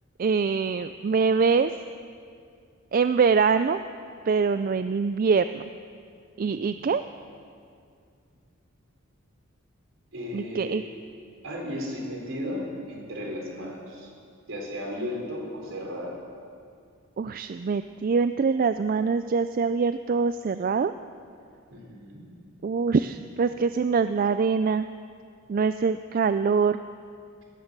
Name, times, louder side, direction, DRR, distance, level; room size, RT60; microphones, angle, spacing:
voice 1, 0.2-1.7 2.9-3.8 4.3-5.6 6.4-7.0 10.3-10.8 17.2-20.9 22.6-24.9 25.5-26.8, right 5 dB, 40° right, 11 dB, 0.3 m, -24 dB
voice 2, 6.4-6.9 10.1-10.8 11.4-14.1 14.5-16.2 21.7-22.2, left 1 dB, 65° right, -1 dB, 4.1 m, -35 dB
18.0 x 11.0 x 6.8 m, 2.3 s
head